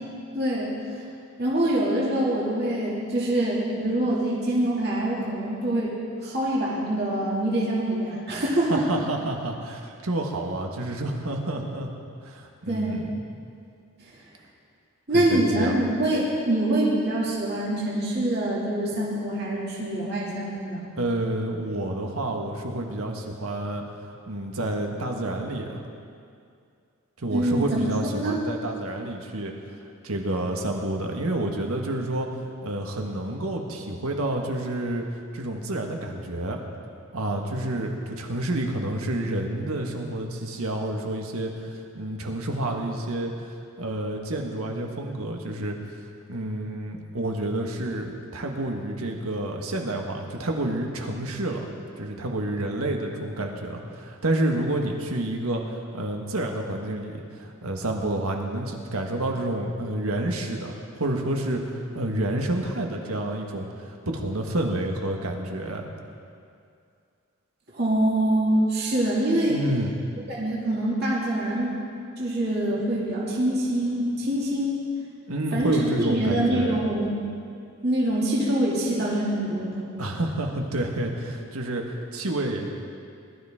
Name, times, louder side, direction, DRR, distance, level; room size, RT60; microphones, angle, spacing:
voice 1, 0.0-0.7 1.4-5.9 6.2-8.8 12.7-13.0 15.1-20.8 27.3-27.8 28.1-28.4 67.7-69.6 70.3-71.7 72.2-74.8 75.5-77.2 77.8-79.9, right 1 dB, 45° right, -6 dB, 2.5 m, -25 dB
voice 2, 8.7-11.9 12.2-13.2 15.1-15.8 21.0-23.8 24.3-25.8 27.2-29.5 30.0-32.3 32.6-35.0 35.3-36.6 37.1-45.8 46.3-51.7 51.9-65.8 69.5-70.0 75.3-76.8 80.0-82.7, right 1 dB, 80° right, 2 dB, 1.6 m, -29 dB
20.0 x 12.5 x 3.7 m, 2.3 s
head